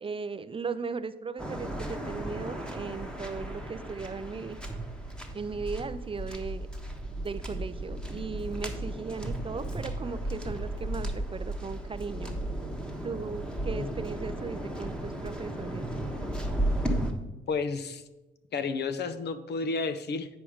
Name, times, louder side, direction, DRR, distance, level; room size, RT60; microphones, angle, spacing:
voice 1, 0.0-4.6 5.3-6.7 7.2-12.4 13.0-15.8, right 5 dB, 25° right, 13 dB, 0.4 m, -37 dB
Waves surf, 1.4-17.1, right 1 dB, 5° left, 1.3 m, -35 dB
voice 2, 17.5-18.0 18.5-20.3, left 4 dB, 55° left, 11 dB, 0.8 m, -31 dB
9.2 x 5.0 x 5.0 m, 1.1 s
cardioid pair, 90°, 20 cm